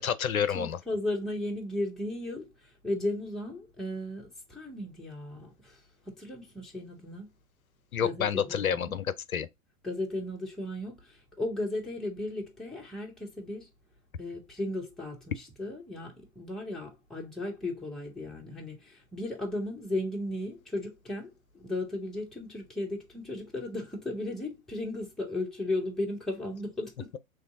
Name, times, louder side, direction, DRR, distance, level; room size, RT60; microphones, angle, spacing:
voice 1, 0.0-0.8 7.9-9.5, left 8 dB, 85° left, 0.5 m, -29 dB
voice 2, 0.5-5.8 6.1-7.3 8.0-9.0 9.8-13.7 14.2-27.2, left 1 dB, ahead, 0.5 m, -35 dB
3.2 x 2.6 x 3.6 m
figure-of-eight pair, 105°, 41 cm